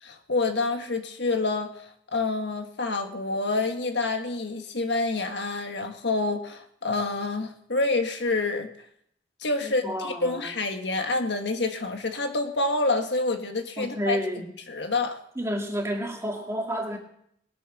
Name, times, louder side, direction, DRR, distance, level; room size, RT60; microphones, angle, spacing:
voice 1, 0.0-8.7 9.4-14.2 14.7-15.2, left 3 dB, 70° left, 5 dB, 1.6 m, -27 dB
voice 2, 9.6-10.5 13.8-14.5 15.4-17.0, equal, 15° right, 1 dB, 2.2 m, -30 dB
20.5 x 7.8 x 6.1 m, 0.70 s
head